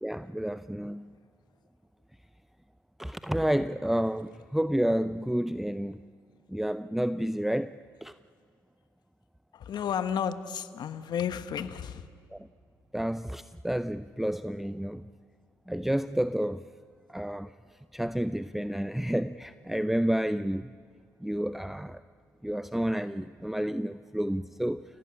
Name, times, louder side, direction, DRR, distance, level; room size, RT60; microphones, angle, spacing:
voice 1, 0.0-1.1 3.0-6.0 6.5-7.7 8.0-8.1 12.3-12.5 12.9-15.1 15.7-16.7 17.1-17.5 17.9-20.7 21.2-22.0 22.4-24.8, equal, 5° right, 0.6 m, -30 dB
voice 2, 9.5-12.1, left 8 dB, 60° left, 1.3 m, -32 dB
28.5 x 17.0 x 10.0 m
hypercardioid pair, 55°, 8 cm